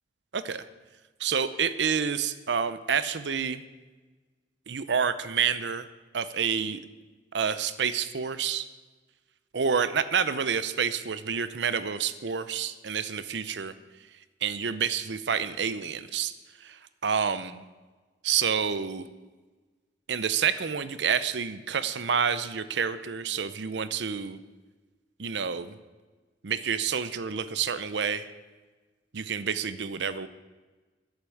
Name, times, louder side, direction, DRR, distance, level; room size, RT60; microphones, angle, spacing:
voice 1, 0.3-0.6 1.2-3.6 4.7-5.9 6.1-6.8 7.3-8.7 9.5-13.7 14.4-16.3 16.6-17.6 18.2-19.1 20.1-24.4 25.2-25.8 26.4-28.3 29.1-30.3, right 7 dB, 75° right, 14 dB, 0.6 m, -28 dB
12.0 x 8.1 x 8.4 m, 1.3 s
head